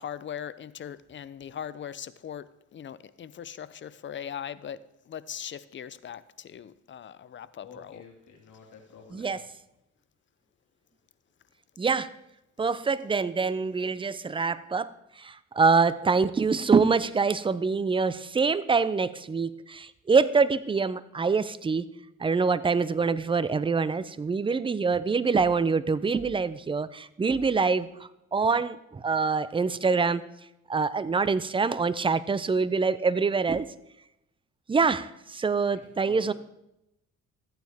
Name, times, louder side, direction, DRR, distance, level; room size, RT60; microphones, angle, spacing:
voice 1, 0.0-4.8 5.1-8.0, left 9 dB, 40° left, 0.5 m, -40 dB
voice 2, 7.6-9.4 35.7-36.3, left 6 dB, 75° left, 2.3 m, -50 dB
voice 3, 11.8-12.2 12.6-21.9 22.2-30.2 30.7-33.7 34.7-36.3, right 4 dB, 15° right, 0.5 m, -25 dB
13.5 x 9.1 x 3.5 m
cardioid pair, 90°, 30 cm